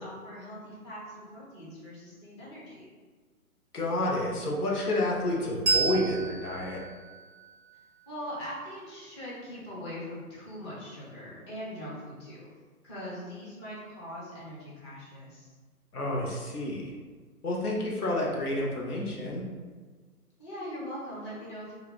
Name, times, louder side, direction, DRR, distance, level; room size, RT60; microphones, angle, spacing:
voice 1, 0.0-2.9 8.1-12.5 12.8-15.5 20.4-21.7, equal, 20° left, -7 dB, 0.7 m, -41 dB
voice 2, 3.7-6.8 15.9-16.9 17.4-19.4, left 1 dB, 80° left, -2 dB, 0.9 m, -29 dB
Bell, 5.6-8.7, right 4 dB, 20° right, 0.5 m, -32 dB
2.4 x 2.2 x 3.5 m, 1.5 s
figure-of-eight pair, 135°, 45 cm